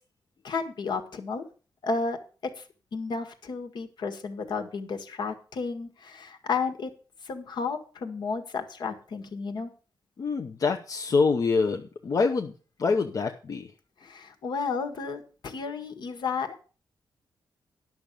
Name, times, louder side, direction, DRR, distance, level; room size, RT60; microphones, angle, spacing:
voice 1, 0.4-1.4 1.8-2.2 2.6-2.7 2.9-6.9 7.2-9.7 14.0-16.6, left 4 dB, 70° left, 6 dB, 1.6 m, -32 dB
voice 2, 10.2-12.5 12.8-13.7, left 4 dB, 50° left, 3 dB, 0.8 m, -25 dB
10.5 x 6.2 x 6.7 m, 0.37 s
wide cardioid pair, 130°, 8 cm